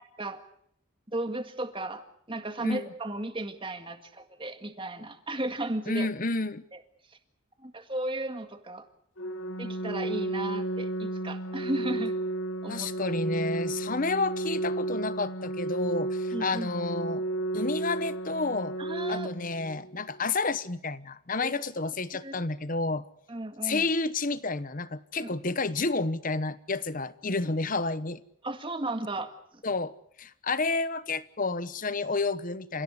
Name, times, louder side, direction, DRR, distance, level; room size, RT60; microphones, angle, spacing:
voice 1, 1.1-6.1 7.6-8.9 9.6-12.1 12.6-13.2 16.3-16.7 18.8-19.3 21.4-21.5 22.2-22.4 23.3-23.9 25.2-25.3 28.4-29.3, right 1 dB, 25° right, 7 dB, 1.9 m, -35 dB
voice 2, 5.9-6.6 12.7-17.2 17.5-18.8 19.1-23.0 23.6-28.2 29.6-29.9 30.2-32.8, left 3 dB, 40° left, 15 dB, 1.0 m, -30 dB
Organ, 9.2-20.2, right 2 dB, 60° left, 1.2 m, -33 dB
29.0 x 16.0 x 8.2 m, 0.70 s
head